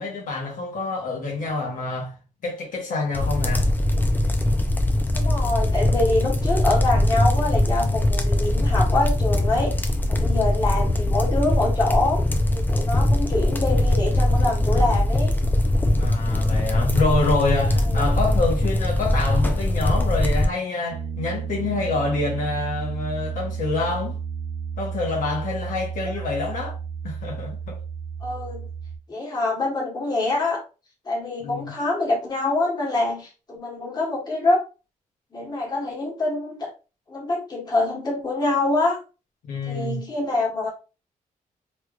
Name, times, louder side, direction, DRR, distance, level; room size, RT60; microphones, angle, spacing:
voice 1, 0.0-2.1 2.4-3.7 16.0-24.2 24.8-26.8 27.0-27.8 31.4-31.7 39.5-40.0, left 3 dB, 70° left, 1.1 m, -27 dB
sound 1, 3.1-20.5, left 1 dB, 15° left, 0.4 m, -21 dB
voice 2, 5.1-9.7 10.1-12.2 12.5-15.4 17.8-18.1 28.2-28.7 29.1-30.6 31.0-34.6 35.3-36.7 37.1-39.0 39.6-40.7, left 2 dB, 30° left, 1.3 m, -25 dB
Piano, 20.9-29.0, right 7 dB, 45° right, 0.6 m, -32 dB
3.2 x 3.1 x 2.4 m
wide cardioid pair, 145°, 14 cm